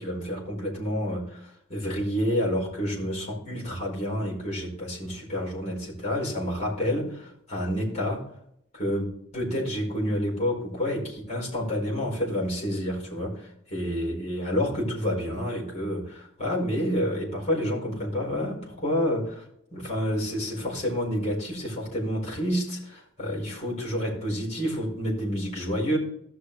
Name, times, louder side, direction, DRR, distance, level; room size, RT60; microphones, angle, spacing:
voice 1, 0.0-8.3 8.7-9.1 9.3-19.4 19.7-26.0, equal, 35° left, -3 dB, 4.8 m, -29 dB
16.0 x 6.1 x 3.4 m, 0.72 s
head